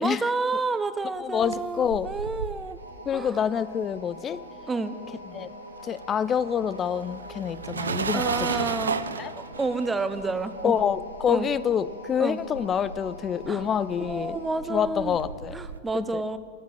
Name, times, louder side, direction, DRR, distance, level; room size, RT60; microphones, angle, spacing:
voice 1, 0.0-2.8 3.1-3.3 4.7-5.0 8.1-9.0 9.4-10.8 11.3-11.5 12.2-12.4 13.5-13.6 14.0-15.2 15.5-16.4, right 3 dB, 10° right, 13 dB, 0.6 m, -29 dB
voice 2, 1.2-2.1 3.1-4.4 5.3-5.5 5.8-8.5 9.2-9.3 10.6-14.4 14.7-15.5 15.9-16.2, left 8 dB, 25° left, 18 dB, 0.4 m, -27 dB
sound 1, 1.2-4.8 5.1-15.8, right 5 dB, 70° right, 0.5 m, -35 dB
sound 2, 2.7-14.6, left 1 dB, 85° left, 2.0 m, -44 dB
10.0 x 8.8 x 8.7 m, 2.1 s
figure-of-eight pair, 90°, 0 cm